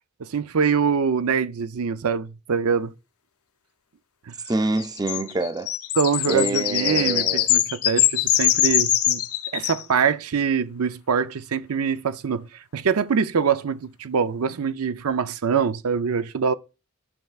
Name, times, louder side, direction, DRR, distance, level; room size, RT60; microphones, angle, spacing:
voice 1, 0.2-2.9 6.0-9.2 9.5-12.5 12.7-16.5, right 6 dB, 80° right, 0.5 m, -24 dB
voice 2, 4.5-5.7 6.3-7.5, right 2 dB, 20° right, 0.5 m, -26 dB
sound 1, 4.8-9.8, left 12 dB, 85° left, 0.7 m, -22 dB
12.5 x 5.7 x 2.4 m
head